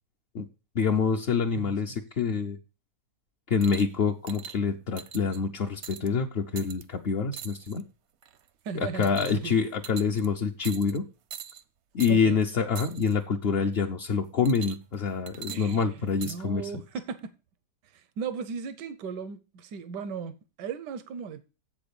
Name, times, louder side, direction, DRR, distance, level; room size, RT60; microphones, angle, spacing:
voice 1, 0.7-2.6 3.5-7.8 8.7-11.0 11.9-16.7, left 5 dB, 60° left, 0.6 m, -26 dB
sound 1, 3.6-3.9 4.3-4.6 5.0-5.4 5.8-6.1 6.6-6.8 7.3-7.8 8.2-8.5 9.0-9.5 9.8-10.3 10.6-11.0 11.3-11.6 12.0-12.1 12.7-13.1 14.4-14.9 15.3-16.4 17.2-17.3, right 8 dB, 65° right, 0.7 m, -42 dB
voice 2, 8.6-9.1 9.4-9.6 12.1-12.4 15.5-15.9 16.2-17.3 17.9-21.4, right 6 dB, 90° right, 1.4 m, -36 dB
7.9 x 6.0 x 6.8 m
omnidirectional pair, 1.8 m